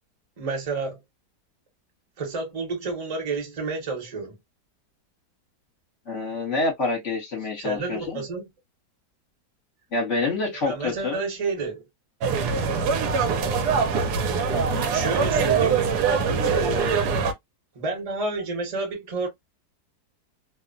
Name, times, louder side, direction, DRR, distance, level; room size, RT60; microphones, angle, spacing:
voice 1, 0.4-1.0 2.2-4.4 7.6-8.4 10.6-11.8 14.8-15.9 16.4-17.1 17.7-19.3, right 3 dB, 30° right, 0.9 m, -30 dB
voice 2, 6.1-8.2 9.9-11.2 14.5-14.9, left 3 dB, 50° left, 1.3 m, -27 dB
sound 1, 12.2-17.3, right 5 dB, 75° right, 1.1 m, -23 dB
2.9 x 2.1 x 2.5 m
omnidirectional pair, 1.7 m